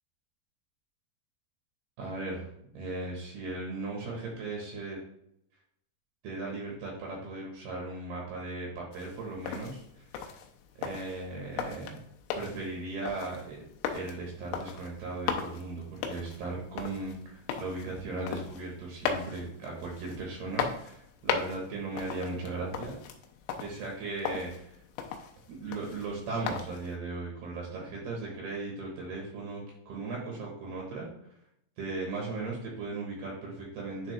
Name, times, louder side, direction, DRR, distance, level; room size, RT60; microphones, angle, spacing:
voice 1, 2.0-2.5 2.7-5.0 6.2-9.8 10.8-12.0 12.3-13.6 13.9-23.0 23.6-24.7 25.5-31.1 31.8-34.1, right 3 dB, 65° right, -2 dB, 3.0 m, -37 dB
sound 1, 8.9-27.0, left 7 dB, 90° left, 3.2 m, -38 dB
10.0 x 3.7 x 3.3 m, 0.74 s
omnidirectional pair, 5.4 m